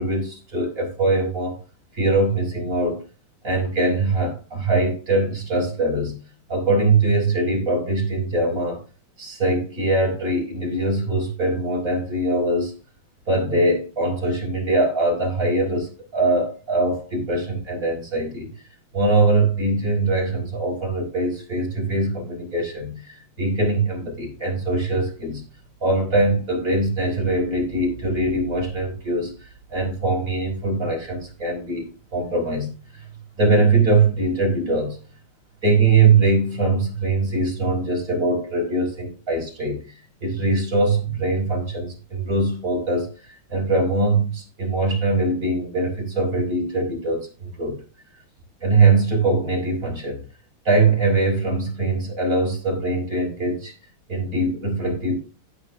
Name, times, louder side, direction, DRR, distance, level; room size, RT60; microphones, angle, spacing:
voice 1, 0.0-1.6 1.9-3.0 3.4-6.2 6.5-8.8 9.2-12.7 13.3-18.5 18.9-25.4 25.8-33.0 33.4-35.0 35.6-47.8 48.6-50.2 50.6-53.7 54.1-55.2, right 2 dB, 40° right, 5.9 m, -22 dB
16.0 x 7.7 x 2.5 m
omnidirectional pair, 2.4 m